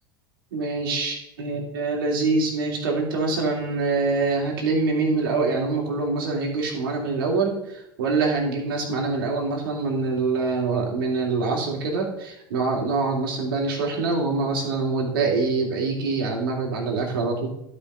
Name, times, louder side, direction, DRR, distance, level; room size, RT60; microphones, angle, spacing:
voice 1, 0.5-17.5, right 3 dB, 80° right, 0 dB, 2.8 m, -25 dB
11.5 x 5.4 x 5.4 m, 0.81 s
hypercardioid pair, 85°, 12 cm